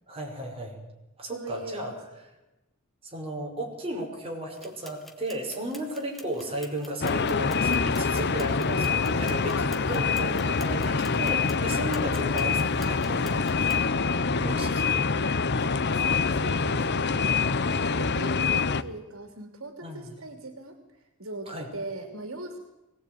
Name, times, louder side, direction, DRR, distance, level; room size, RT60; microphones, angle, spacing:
voice 1, 0.1-0.8 1.2-1.9 3.0-14.0 14.4-15.1 16.8-17.4 19.8-20.1 21.5-21.7, right 1 dB, 25° right, 0 dB, 5.7 m, -35 dB
voice 2, 1.3-1.8 6.2-6.5 14.5-20.8 21.2-22.6, right 2 dB, 75° right, 6 dB, 3.1 m, -41 dB
sound 1, 4.5-13.8, equal, ahead, 2.4 m, -50 dB
sound 2, 7.0-18.8, left 4 dB, 55° left, 0.8 m, -25 dB
23.0 x 19.0 x 9.3 m, 0.97 s
head